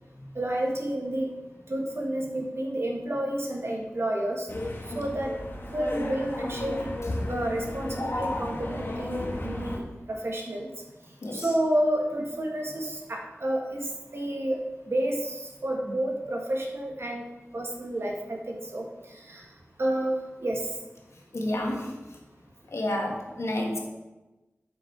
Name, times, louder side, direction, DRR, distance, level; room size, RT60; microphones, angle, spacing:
voice 1, 0.3-1.3 1.7-4.5 4.9-5.3 5.7-6.9 7.3-10.7 11.3-14.6 14.9-17.2 17.5-18.8 19.3-19.4 19.8-20.7, right 1 dB, 65° right, 0 dB, 1.6 m, -30 dB
sound 1, 4.5-9.8, left 1 dB, 50° left, 1.5 m, -33 dB
voice 2, 21.3-21.9 22.7-23.8, left 1 dB, 85° left, 0 dB, 1.6 m, -29 dB
8.8 x 6.2 x 4.6 m, 1.1 s
wide cardioid pair, 65°, 5 cm